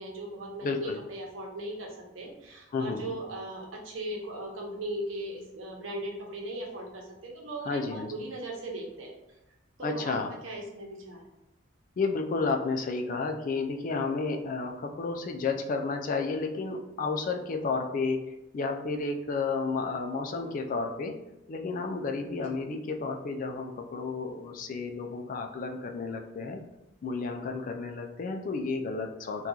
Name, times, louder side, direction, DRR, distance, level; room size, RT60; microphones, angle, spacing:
voice 1, 0.0-1.9 2.1-9.2 9.8-10.2 10.4-11.2, right 1 dB, 90° right, -1 dB, 0.8 m, -38 dB
voice 2, 0.6-1.0 2.7-3.2 7.6-8.1 9.8-10.3 12.0-21.2 21.5-26.6 27.0-29.5, left 4 dB, 45° left, 4 dB, 0.3 m, -32 dB
2.9 x 2.3 x 3.7 m, 0.93 s
head